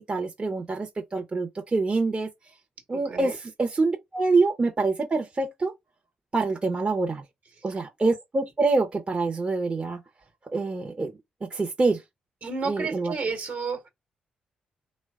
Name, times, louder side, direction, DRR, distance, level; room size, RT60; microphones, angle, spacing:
voice 1, 0.0-2.3 2.9-5.7 6.3-7.2 7.6-10.0 10.5-11.1 11.4-12.0 12.7-13.1, right 3 dB, 35° right, 0.7 m, -26 dB
voice 2, 12.4-13.8, right 4 dB, 60° right, 1.1 m, -31 dB
3.1 x 2.2 x 3.5 m
hypercardioid pair, 40°, 3 cm